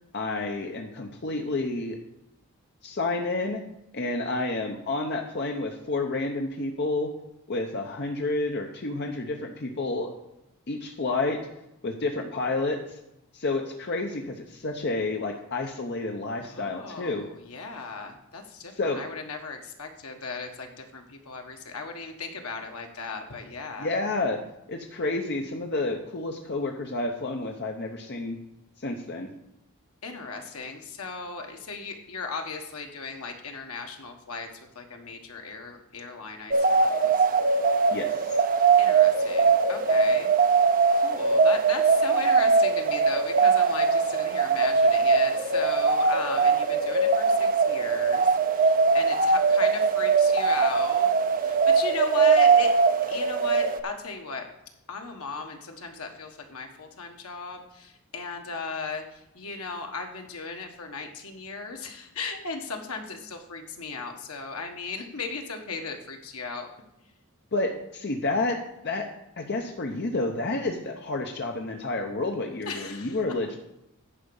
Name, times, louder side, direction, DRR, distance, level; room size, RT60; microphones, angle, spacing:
voice 1, 0.1-2.0 2.8-3.6 3.9-7.1 7.5-10.1 10.7-11.4 11.8-13.0 13.3-17.2 18.8-19.0 23.8-24.4 24.7-28.4 28.8-29.3 37.9-38.4 67.5-68.6 68.8-69.1 69.4-73.6, left 2 dB, 50° left, 3 dB, 0.8 m, -30 dB
voice 2, 16.4-23.9 30.0-34.5 34.7-37.3 38.8-40.3 40.9-51.1 51.4-52.7 53.0-54.4 54.9-66.7 72.7-73.2, left 4 dB, 75° left, 4 dB, 1.4 m, -36 dB
sound 1, 36.5-53.8, right 5 dB, 40° right, 0.6 m, -21 dB
10.0 x 5.1 x 7.0 m, 0.87 s
head